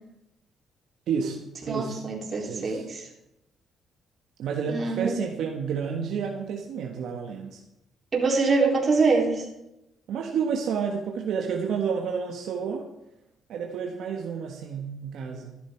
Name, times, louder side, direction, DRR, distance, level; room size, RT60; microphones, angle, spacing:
voice 1, 1.1-1.4 1.7-2.0 2.5-2.8 4.4-7.6 10.1-12.9 13.5-15.6, right 6 dB, 75° right, 1 dB, 1.4 m, -30 dB
voice 2, 1.7-3.1 4.7-5.1 8.1-9.4, right 4 dB, 40° right, -1 dB, 3.9 m, -24 dB
13.5 x 11.0 x 4.6 m, 0.86 s
cardioid pair, 90°, 0 cm